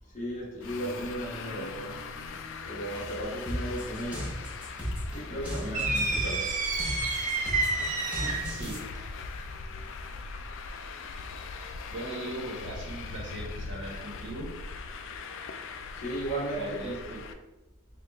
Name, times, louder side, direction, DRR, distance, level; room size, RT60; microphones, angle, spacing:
voice 1, 0.0-2.0 2.3-2.4 2.6-4.3 5.1-6.6 7.3-7.8 9.6-9.9 15.9-17.0, right 1 dB, 35° left, -4 dB, 1.2 m, -36 dB
Traffic noise roadway noise, 0.6-17.3, left 4 dB, 60° left, 0.4 m, -41 dB
sound 1, 3.5-8.8, equal, 5° right, 0.9 m, -35 dB
sound 2, 5.7-8.6, right 3 dB, 35° right, 0.5 m, -29 dB
voice 2, 8.2-8.8 11.9-14.5 16.5-17.2, right 1 dB, 60° right, -2 dB, 1.1 m, -39 dB
4.7 x 2.4 x 3.5 m, 1.1 s
head